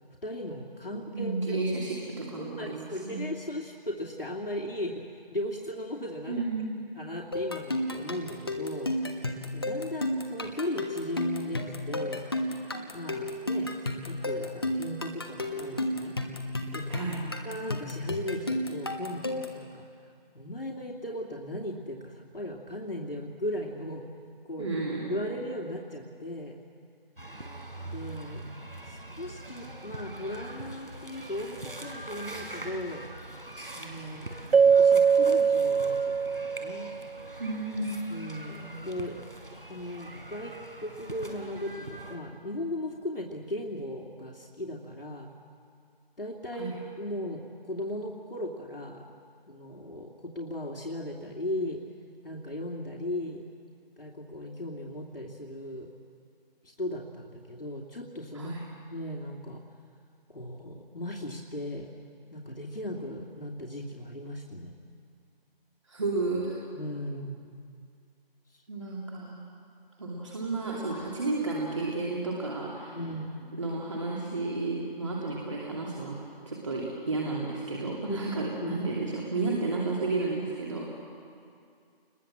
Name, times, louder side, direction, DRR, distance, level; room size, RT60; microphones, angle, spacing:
voice 1, 0.2-1.6 2.4-5.0 5.3-6.4 7.0-9.2 9.5-12.3 12.9-16.1 16.7-16.9 17.4-19.9 20.3-24.0 24.5-24.7 25.1-26.5 27.8-28.4 28.9-33.0 33.7-34.3 34.6-36.9 38.1-39.2 39.7-45.3 46.2-49.0 49.5-51.8 52.2-53.4 54.0-55.9 56.6-58.5 58.9-59.6 60.3-61.9 62.3-64.8 66.7-67.5 68.5-68.6 72.9-73.3 78.1-78.2 78.6-78.8, left 1 dB, 70° left, -1 dB, 2.7 m, -37 dB
voice 2, 1.1-3.2 6.3-6.8 16.9-17.2 24.6-25.2 37.4-37.9 46.6-46.7 58.3-58.6 65.9-66.6 68.7-69.4 70.0-73.0 73.6-76.2 76.5-80.9, right 3 dB, 30° right, -4 dB, 2.7 m, -32 dB
sound 1, 7.3-19.6, left 1 dB, 25° left, 1.3 m, -32 dB
sound 2, 27.2-42.2, right 1 dB, 65° right, 4.3 m, -43 dB
Keyboard (musical), 34.5-37.0, right 6 dB, 85° right, 0.6 m, -22 dB
29.0 x 21.5 x 7.5 m, 2.3 s
figure-of-eight pair, 165°, 30 cm